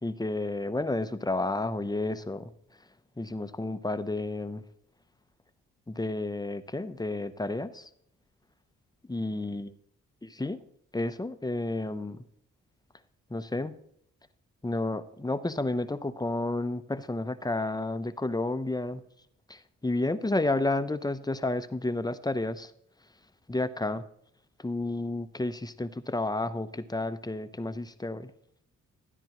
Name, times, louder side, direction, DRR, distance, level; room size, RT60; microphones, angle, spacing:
voice 1, 0.0-2.5 3.2-4.6 5.9-7.9 9.1-9.7 10.2-10.6 10.9-12.2 13.3-13.8 14.6-19.0 19.5-22.7 23.5-24.1 24.6-28.3, left 2 dB, 10° left, 12 dB, 0.7 m, -31 dB
13.0 x 9.9 x 3.0 m, 0.69 s
supercardioid pair, 45°, 36 cm